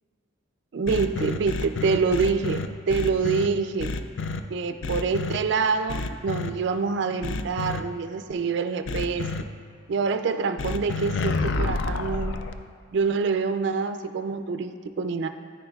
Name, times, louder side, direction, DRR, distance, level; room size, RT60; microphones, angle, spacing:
voice 1, 0.7-3.9 4.5-9.5 9.9-12.4 12.9-15.3, right 5 dB, 55° right, 9 dB, 0.3 m, -26 dB
sound 1, 0.9-3.5 3.8-4.4 4.8-5.4 5.9-6.5 7.2-7.8 8.9-9.4 10.6-12.5, left 3 dB, 60° left, 0.4 m, -29 dB
9.5 x 9.5 x 2.3 m, 2.1 s
head